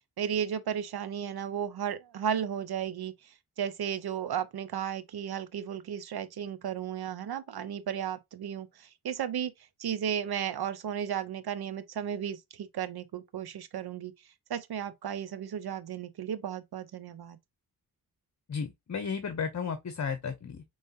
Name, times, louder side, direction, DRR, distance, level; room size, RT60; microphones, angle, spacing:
voice 1, 0.2-3.1 3.6-8.7 9.0-9.5 9.8-14.1 14.5-17.4, right 9 dB, 75° right, 0.8 m, -34 dB
voice 2, 18.5-20.6, left 6 dB, 45° left, 1.0 m, -34 dB
5.4 x 3.2 x 2.6 m
cardioid pair, 60°, 38 cm